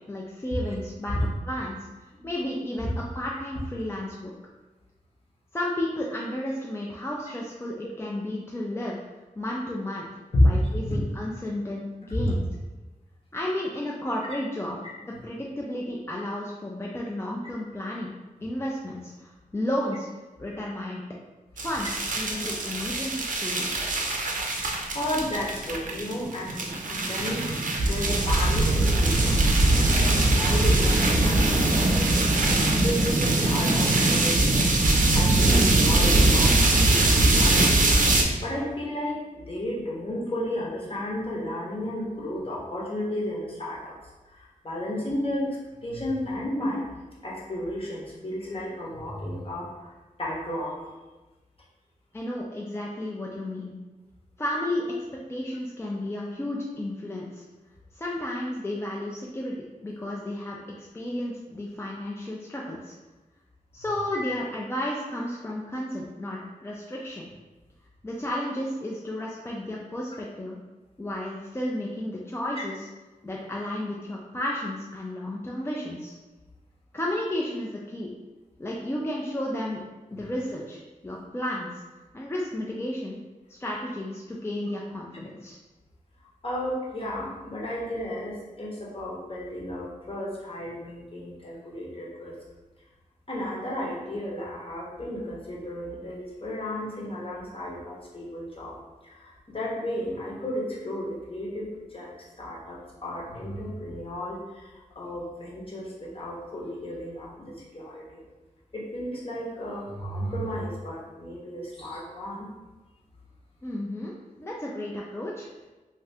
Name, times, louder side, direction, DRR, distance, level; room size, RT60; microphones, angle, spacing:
voice 1, 0.1-4.3 5.5-9.0 9.4-10.1 10.4-12.4 13.3-18.1 18.4-20.1 20.4-21.0 21.5-21.9 22.2-23.9 52.1-53.7 54.4-54.9 55.3-57.4 57.9-59.6 59.8-62.9 63.7-67.3 68.0-70.6 71.0-72.9 73.2-76.2 76.9-78.1 78.6-79.8 80.1-81.7 82.1-83.2 83.5-85.6 113.6-115.5, left 1 dB, 20° left, -3 dB, 0.4 m, -32 dB
sound 1, 21.6-38.2, right 2 dB, 70° right, 0.5 m, -22 dB
voice 2, 24.9-27.5 27.8-32.3 32.8-34.7 35.1-37.8 38.4-44.0 44.3-46.9 47.2-50.9 64.1-64.3 72.6-72.7 86.4-92.3 93.3-98.8 99.0-102.1 102.4-108.3 108.7-112.5, left 1 dB, 40° left, -5 dB, 0.9 m, -32 dB
2.7 x 2.4 x 3.3 m, 1.2 s
wide cardioid pair, 65°, 14 cm